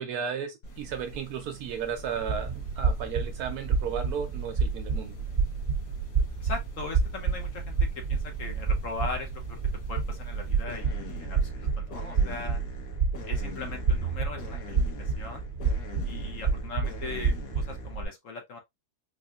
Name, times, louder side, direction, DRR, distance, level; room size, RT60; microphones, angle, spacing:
voice 1, 0.0-5.3, right 7 dB, 75° right, 1.1 m, -34 dB
sound 1, 0.6-18.0, left 2 dB, 85° left, 1.7 m, -46 dB
sound 2, 2.2-18.1, right 5 dB, 50° right, 0.6 m, -29 dB
voice 2, 6.4-9.6 9.9-12.6 13.3-15.4 16.0-18.6, left 4 dB, 60° left, 1.1 m, -39 dB
4.3 x 2.7 x 2.3 m
omnidirectional pair, 1.7 m